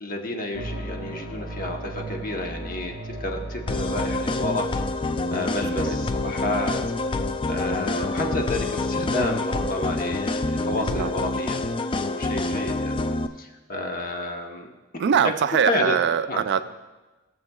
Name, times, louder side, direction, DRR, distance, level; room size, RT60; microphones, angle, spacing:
voice 1, 0.0-4.8 5.3-6.8 7.5-11.6 12.1-13.0 13.4-14.7 15.2-15.3 15.6-16.0 16.3-16.4, left 2 dB, 40° left, 2 dB, 1.0 m, -30 dB
sound 1, 0.5-10.8, right 1 dB, 60° left, 1.5 m, -39 dB
sound 2, 3.7-13.3, left 2 dB, 25° left, 0.3 m, -27 dB
voice 2, 10.8-11.1 15.0-16.6, right 7 dB, 55° right, 12 dB, 0.3 m, -23 dB
17.5 x 7.0 x 2.3 m, 1.2 s
head